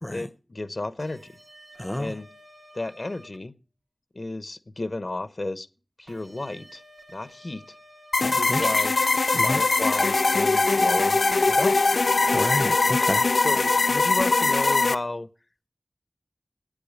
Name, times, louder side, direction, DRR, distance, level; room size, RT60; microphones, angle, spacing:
voice 1, 0.1-1.3 2.0-2.3 2.7-3.5 4.1-5.7 6.0-6.8 7.1-7.7 8.2-8.9 9.4-11.8 13.4-15.3, left 2 dB, 55° left, 1.0 m, -32 dB
sound 1, 1.0-3.4 6.1-8.8 10.3-10.5 12.4-12.6, right 1 dB, 90° right, 1.5 m, -51 dB
voice 2, 1.8-2.1 8.2-8.7 9.3-9.6 12.2-13.3, left 1 dB, 25° left, 0.8 m, -30 dB
sound 2, 8.1-14.9, left 3 dB, 90° left, 0.5 m, -21 dB
8.9 x 8.6 x 8.8 m
wide cardioid pair, 55°, 0 cm